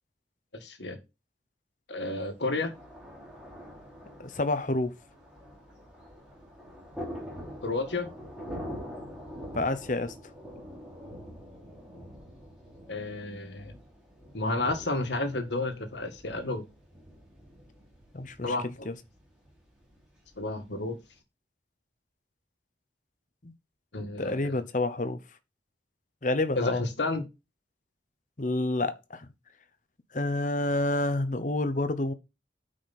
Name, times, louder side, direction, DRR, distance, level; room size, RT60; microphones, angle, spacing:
voice 1, 0.5-1.0 1.9-2.7 7.6-8.1 12.9-13.7 14.3-16.6 18.4-18.9 20.4-21.0 23.9-24.6 26.6-27.2, left 2 dB, 75° left, 1.7 m, -31 dB
Thunder, 2.2-21.1, equal, 5° right, 3.2 m, -45 dB
voice 2, 4.2-4.9 9.5-10.1 18.1-18.9 23.4-23.5 24.2-25.2 26.2-26.8 28.4-29.3 30.1-32.1, left 2 dB, 45° left, 0.9 m, -29 dB
9.1 x 5.0 x 4.2 m
head